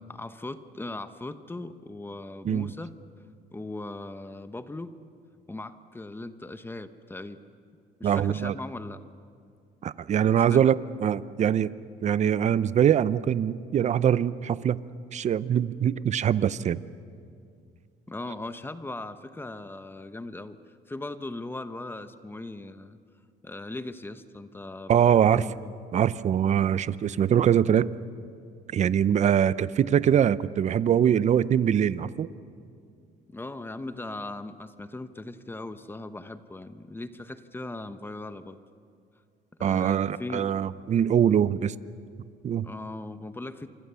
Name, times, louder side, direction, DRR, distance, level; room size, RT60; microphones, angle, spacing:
voice 1, 0.1-2.9 3.5-4.9 5.5-7.4 8.0-9.0 10.5-10.6 18.1-20.6 20.9-23.0 23.4-25.7 26.6-26.7 33.3-38.6 39.6-40.5 42.6-43.7, left 2 dB, 15° left, 10 dB, 1.0 m, -39 dB
voice 2, 8.0-8.6 9.8-11.7 12.0-14.8 15.1-16.8 24.9-25.5 25.9-27.9 28.7-32.3 39.6-41.7 42.4-42.7, right 9 dB, 45° right, 16 dB, 0.7 m, -23 dB
28.0 x 25.0 x 7.0 m, 2.3 s
cardioid pair, 110°, 17 cm